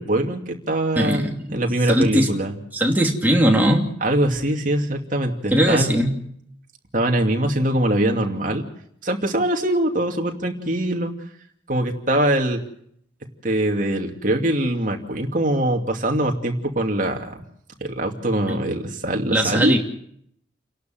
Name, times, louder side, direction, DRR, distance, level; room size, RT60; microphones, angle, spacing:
voice 1, 0.0-2.5 4.0-6.0 6.9-8.6 9.0-11.1 11.7-12.6 13.4-17.3 17.8-19.8, right 1 dB, 45° right, 2 dB, 2.6 m, -23 dB
voice 2, 1.0-1.6 1.9-2.3 2.7-3.9 5.5-6.2 18.5-18.6 19.3-19.8, equal, 10° right, 0 dB, 2.8 m, -19 dB
29.5 x 12.0 x 7.8 m, 0.70 s
head